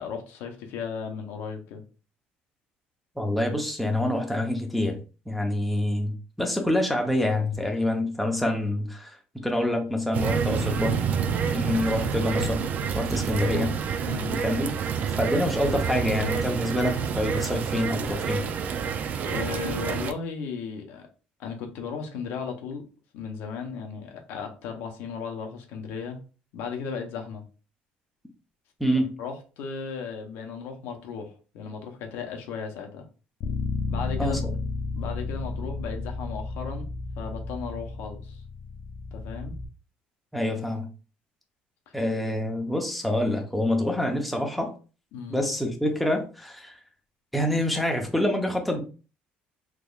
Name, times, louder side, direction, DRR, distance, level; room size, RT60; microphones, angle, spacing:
voice 1, 0.0-1.8 11.6-11.7 14.0-14.4 19.2-21.0 21.4-22.8 23.1-26.2 26.5-27.4 28.9-33.1 33.9-34.5 34.9-36.9 37.2-38.4 39.1-39.5 41.9-42.0 45.1-45.4, left 6 dB, 80° left, 4 dB, 0.8 m, -35 dB
voice 2, 3.2-5.0 5.3-6.1 6.4-11.0 11.4-12.6 12.9-13.7 14.4-14.7 15.2-18.4 28.8-29.1 34.2-34.5 40.3-40.9 41.9-44.7 45.3-46.7 47.3-48.8, left 1 dB, ahead, 1 dB, 0.7 m, -26 dB
sound 1, 10.1-20.1, right 6 dB, 45° right, 0.4 m, -28 dB
Bass guitar, 33.4-39.7, left 3 dB, 60° left, 0.4 m, -32 dB
3.5 x 3.0 x 2.3 m, 0.35 s
cardioid pair, 135°, 4 cm